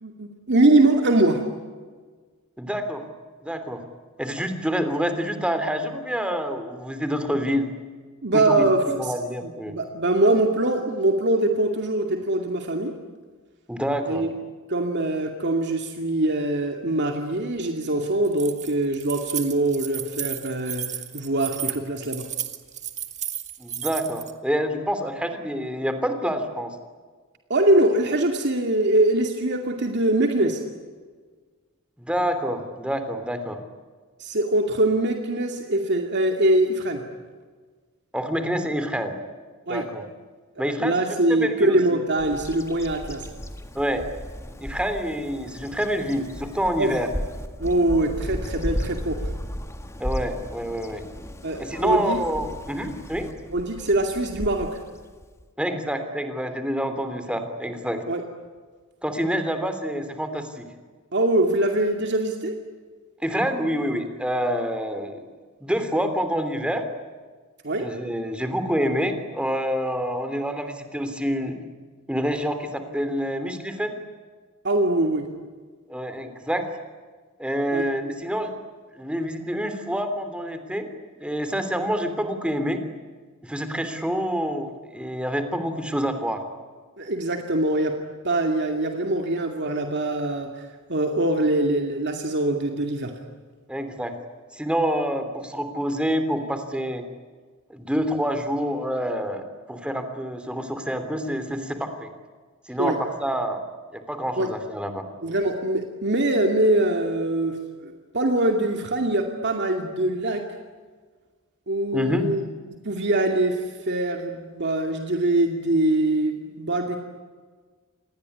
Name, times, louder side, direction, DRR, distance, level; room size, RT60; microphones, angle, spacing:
voice 1, 0.0-1.4 8.2-9.1 9.4-12.9 14.1-14.3 14.7-20.9 21.1-22.3 27.5-30.6 34.2-37.0 39.7-39.8 40.6-43.3 46.8-46.9 47.6-49.2 51.4-52.2 53.5-54.8 58.1-58.2 61.1-62.6 67.6-67.9 74.6-75.3 77.7-77.9 87.0-88.0 88.2-93.1 102.8-103.0 104.4-104.5 105.2-110.4 111.7-112.4 112.8-117.0, right 1 dB, 55° right, 3 dB, 2.5 m, -23 dB
voice 2, 2.6-3.0 3.4-3.8 4.2-7.7 8.3-9.8 13.7-14.2 23.6-26.7 32.0-33.6 38.1-39.2 39.7-40.0 40.6-41.8 43.7-44.0 44.4-47.1 50.0-51.0 51.6-53.3 55.6-58.0 59.0-60.7 63.2-65.3 65.6-66.8 67.8-71.6 72.1-73.9 75.9-76.7 77.4-78.5 78.9-80.9 81.2-82.8 83.4-86.4 93.7-94.1 94.5-97.1 97.7-102.1 102.7-103.6 103.9-105.0 111.9-112.3, equal, 5° right, 8 dB, 3.1 m, -27 dB
Keys jangling, 18.2-24.3, right 10 dB, 35° right, 2.0 m, -33 dB
Bird vocalization bird call bird song, 42.2-55.5, equal, 15° left, 1.8 m, -35 dB
27.5 x 20.0 x 9.9 m, 1.5 s
head